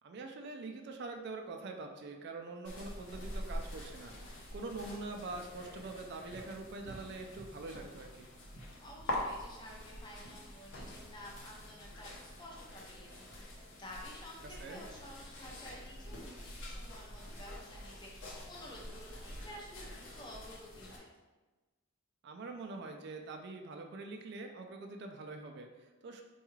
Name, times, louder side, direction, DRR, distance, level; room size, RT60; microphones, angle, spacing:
voice 1, 0.0-8.3 14.4-14.8 22.2-26.2, right 3 dB, 55° right, 3 dB, 0.3 m, -44 dB
sound 1, 2.6-21.0, left 1 dB, 60° left, 0.7 m, -45 dB
voice 2, 8.8-21.1, left 1 dB, 20° left, -2 dB, 0.5 m, -52 dB
4.5 x 2.3 x 3.1 m, 1.2 s
head